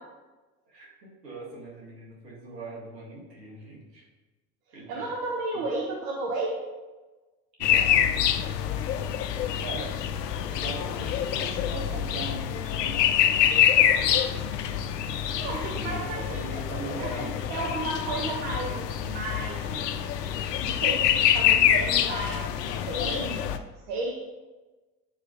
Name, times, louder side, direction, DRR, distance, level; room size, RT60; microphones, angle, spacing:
voice 1, 0.6-4.1 4.7-5.1 7.6-8.0 9.6-10.0 10.5-14.2 15.7-17.4, right 2 dB, 75° right, -5 dB, 2.2 m, -40 dB
voice 2, 4.9-6.6 15.4-16.5 17.0-19.8 20.6-23.6 23.9-24.2, right 2 dB, 55° right, -1 dB, 1.2 m, -33 dB
sound 1, 7.6-23.6, left 10 dB, 75° left, 0.6 m, -26 dB
10.5 x 5.0 x 2.8 m, 1.2 s
figure-of-eight pair, 65°, 49 cm